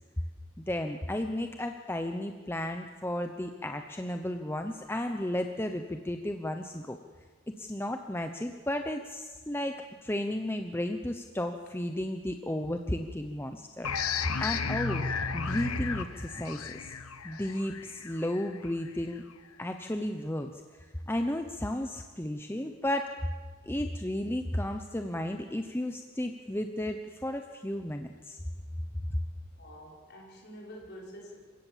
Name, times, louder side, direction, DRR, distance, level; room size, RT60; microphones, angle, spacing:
voice 1, 0.6-7.0 7.6-13.9 14.4-15.0 15.3-16.9 17.2-19.2 19.6-20.5 21.1-23.1 23.7-28.4, left 1 dB, 10° left, 5 dB, 0.9 m, -33 dB
sound 1, 13.8-19.2, left 5 dB, 80° left, 1.3 m, -34 dB
voice 2, 29.6-31.4, equal, 50° left, -2 dB, 5.9 m, -47 dB
28.0 x 16.5 x 7.5 m, 1.4 s
head